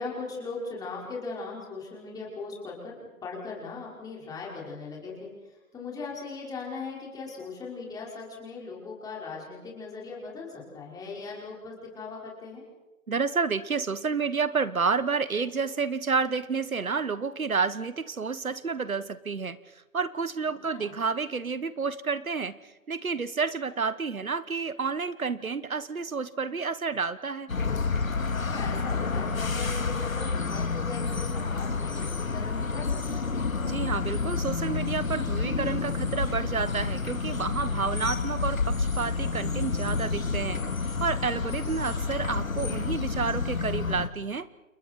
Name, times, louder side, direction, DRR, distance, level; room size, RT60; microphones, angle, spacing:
voice 1, 0.0-12.6 20.7-20.9 28.4-33.3 41.6-41.9, left 4 dB, 10° left, -3 dB, 5.5 m, -39 dB
voice 2, 13.1-22.6 22.9-27.5 33.6-40.6 41.0-44.5, right 5 dB, 80° right, 15 dB, 1.2 m, -30 dB
sound 1, 27.5-44.1, left 4 dB, 75° left, 2.3 m, -29 dB
29.5 x 29.0 x 4.7 m, 1.1 s
figure-of-eight pair, 140°, 41 cm